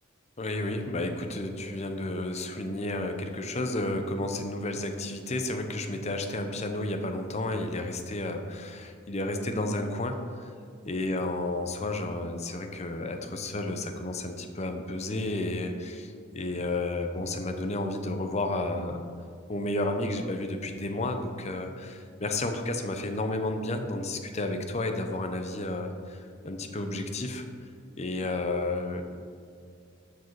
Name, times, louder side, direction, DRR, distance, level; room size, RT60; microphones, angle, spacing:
voice 1, 0.4-10.5 10.8-19.0 19.5-27.5 28.0-29.0, left 2 dB, 35° left, 5 dB, 0.7 m, -32 dB
12.5 x 4.9 x 4.7 m, 2.3 s
head